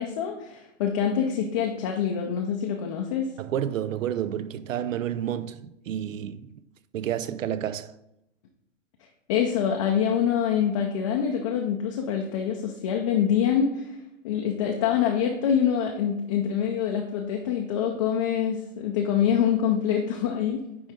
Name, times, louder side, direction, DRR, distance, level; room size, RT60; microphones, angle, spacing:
voice 1, 0.0-3.3 9.3-13.9 14.2-20.6, left 8 dB, 25° left, 0.4 m, -25 dB
voice 2, 3.4-6.5 6.9-8.0, right 10 dB, 90° right, 0.6 m, -30 dB
10.0 x 3.8 x 3.6 m
hypercardioid pair, 150°, 38 cm